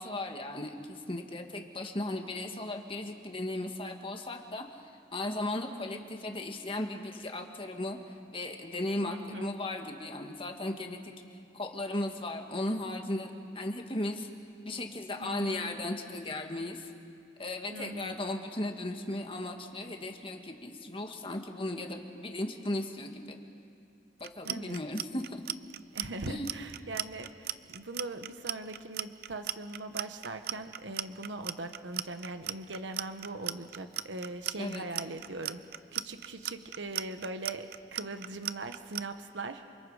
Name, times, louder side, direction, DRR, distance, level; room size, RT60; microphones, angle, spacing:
voice 1, 0.0-4.7 5.1-8.0 8.3-11.1 11.5-14.3 14.6-16.9 17.4-23.4 24.2-25.4 26.3-26.5 34.6-34.9, left 1 dB, 30° left, 4 dB, 1.8 m, -36 dB
voice 2, 9.0-9.5 15.2-15.8 17.7-18.2 24.4-24.8 25.9-35.6 35.9-39.7, right 2 dB, 80° right, 7 dB, 1.2 m, -40 dB
Clock, 24.2-39.0, right 12 dB, 55° right, 0.5 m, -36 dB
28.0 x 28.0 x 5.0 m, 2.6 s
head